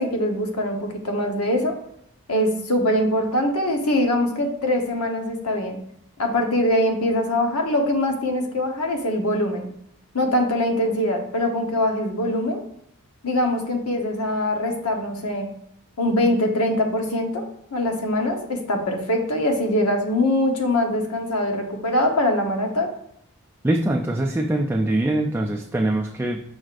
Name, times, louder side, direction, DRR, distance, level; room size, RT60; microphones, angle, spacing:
voice 1, 0.0-1.7 2.3-5.8 6.2-9.7 10.1-12.6 13.2-15.5 16.0-17.5 17.7-22.9, left 1 dB, 80° left, 3 dB, 1.0 m, -23 dB
voice 2, 23.6-26.4, right 1 dB, 10° right, 0 dB, 0.3 m, -23 dB
6.2 x 6.2 x 2.5 m, 0.73 s
head